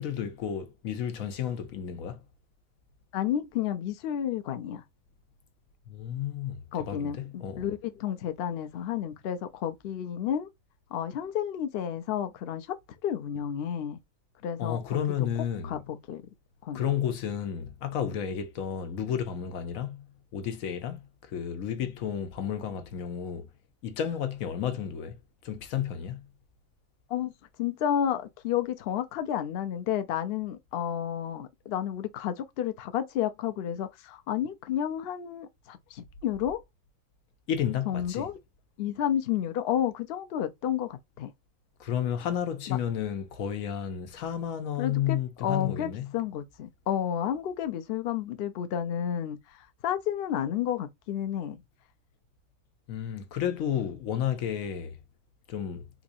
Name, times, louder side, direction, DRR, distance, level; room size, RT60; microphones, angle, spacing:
voice 1, 0.0-2.2 5.9-7.7 14.6-15.8 16.7-20.1 20.3-23.5 23.8-25.2 25.4-26.3 37.5-38.3 41.8-46.1 52.9-55.0 55.5-55.8, left 9 dB, 85° left, 1.2 m, -32 dB
voice 2, 3.1-4.8 6.7-10.5 10.9-12.8 13.0-14.0 14.4-15.0 15.6-16.2 16.6-16.9 27.1-27.3 27.6-36.6 37.9-38.4 38.8-41.3 42.7-42.8 44.8-51.6, left 10 dB, 60° left, 0.7 m, -31 dB
3.9 x 2.5 x 2.6 m
omnidirectional pair, 1.4 m